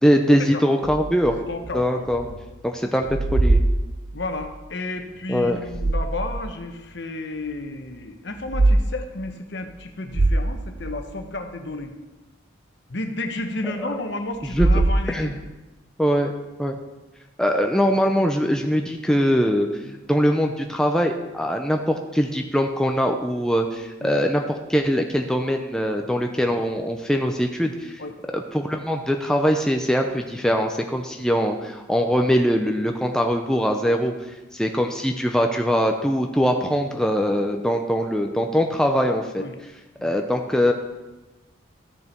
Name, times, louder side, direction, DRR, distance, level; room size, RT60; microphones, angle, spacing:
voice 1, 0.0-1.3 1.7-2.2 2.6-3.1 3.3-3.6 5.3-5.6 13.6-13.9 14.5-14.7 15.1-15.4 16.0-16.3 16.6-16.7 17.4-19.8 20.1-28.0 28.3-39.4 40.0-40.7, equal, 5° left, 3 dB, 0.6 m, -22 dB
sound 1, 0.8-2.5 2.8-4.5 5.4-6.5 7.0-7.1 8.3-8.8 9.2-9.3 9.8-9.9 10.1-11.4 14.4-15.5, right 2 dB, 55° right, 0.7 m, -23 dB
voice 2, 1.5-2.4 4.1-11.9 12.9-15.3 19.8-20.0 24.0-24.2 28.0-28.1 39.4-39.5 40.0-40.1, left 2 dB, 60° left, 6 dB, 1.0 m, -32 dB
14.0 x 6.8 x 4.5 m, 1.1 s
head